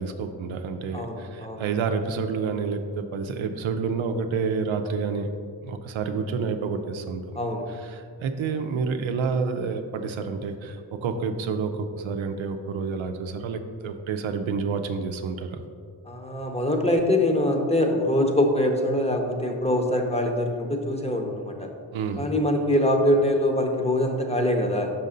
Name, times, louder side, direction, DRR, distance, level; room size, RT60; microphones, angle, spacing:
voice 1, 0.0-5.3 5.6-7.4 7.9-15.6 21.9-22.3, right 5 dB, 85° right, 6 dB, 0.6 m, -29 dB
voice 2, 0.9-1.7 7.3-7.7 16.0-21.7 22.2-24.9, left 1 dB, 15° left, 2 dB, 0.9 m, -24 dB
5.7 x 5.3 x 3.8 m, 2.1 s
cardioid pair, 50°, 46 cm